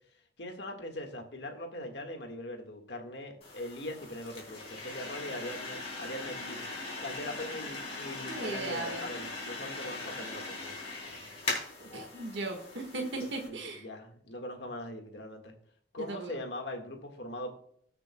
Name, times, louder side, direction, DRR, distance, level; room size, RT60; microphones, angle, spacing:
voice 1, 0.4-6.7 7.0-11.6 11.8-12.0 13.4-15.5 15.9-17.5, left 1 dB, 70° left, 4 dB, 1.7 m, -41 dB
sound 1, 3.4-13.5, left 3 dB, 35° left, 3.4 m, -40 dB
voice 2, 8.2-9.1 11.8-13.8 16.0-16.4, right 2 dB, 75° right, 2 dB, 1.7 m, -37 dB
19.5 x 6.8 x 2.3 m, 0.64 s
head